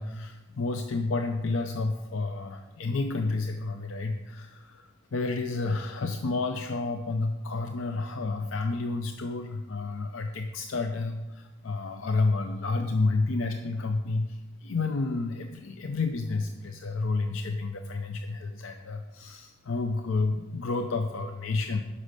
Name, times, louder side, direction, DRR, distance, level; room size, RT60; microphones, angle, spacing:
voice 1, 0.0-21.8, left 3 dB, 70° left, 6 dB, 0.5 m, -30 dB
11.5 x 5.4 x 6.6 m, 1.2 s
head